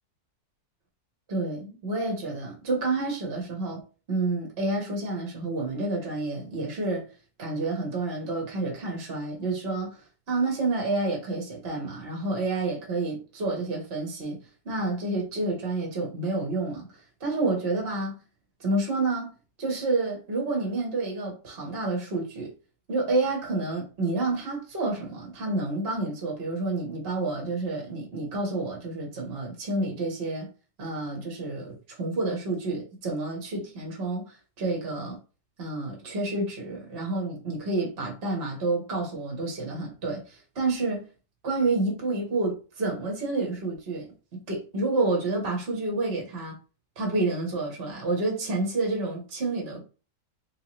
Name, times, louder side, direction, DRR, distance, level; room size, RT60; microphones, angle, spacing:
voice 1, 1.3-3.8 4.1-7.0 7.4-10.0 10.3-14.4 14.6-16.9 17.2-18.2 18.6-19.3 19.6-22.5 22.9-30.5 30.8-35.2 35.6-41.0 41.4-44.1 44.5-46.6 47.0-49.8, right 2 dB, 45° right, 1.2 m, -29 dB
3.6 x 2.9 x 2.9 m
omnidirectional pair, 1.7 m